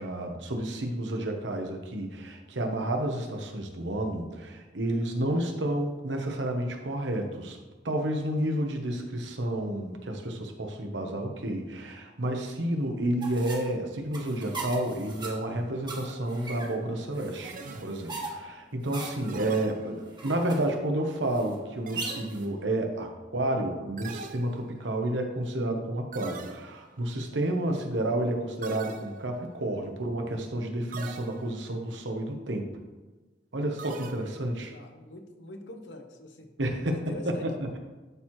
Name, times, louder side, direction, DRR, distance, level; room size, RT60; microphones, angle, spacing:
voice 1, 0.0-7.6 7.8-32.7 33.5-34.7 36.6-37.8, right 1 dB, 90° right, 3 dB, 1.0 m, -30 dB
sound 1, 13.2-22.5, right 3 dB, 25° right, 1.3 m, -40 dB
sound 2, 17.4-18.3 19.3-20.3 21.9-22.7 24.0-25.0 26.1-27.0 28.6-29.5 30.9-31.7 33.8-34.6, right 4 dB, 50° right, 0.6 m, -43 dB
voice 2, 34.7-36.5 36.9-37.5, left 1 dB, 80° left, 4 dB, 1.0 m, -44 dB
11.0 x 4.5 x 3.1 m, 1.2 s
head